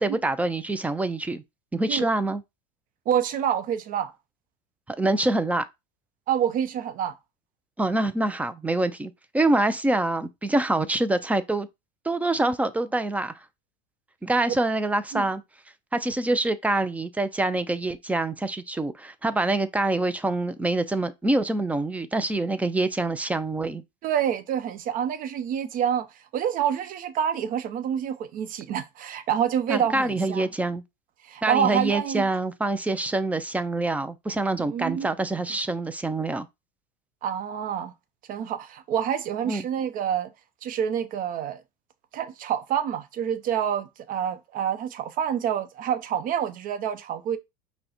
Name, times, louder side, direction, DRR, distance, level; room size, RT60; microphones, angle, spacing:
voice 1, 0.0-1.4 1.7-2.4 4.9-5.6 7.8-11.7 12.1-13.3 14.2-15.4 15.9-23.8 29.7-30.8 31.4-36.5 39.5-39.6, right 2 dB, 5° right, 0.4 m, -25 dB
voice 2, 3.1-4.1 6.3-7.2 15.1-15.3 24.0-26.1 26.3-30.5 31.2-32.2 34.7-35.1 37.2-37.9 38.3-40.3 40.6-41.6 42.1-47.4, right 9 dB, 45° right, 0.8 m, -27 dB
5.3 x 2.2 x 4.3 m
supercardioid pair, 110°, 20 cm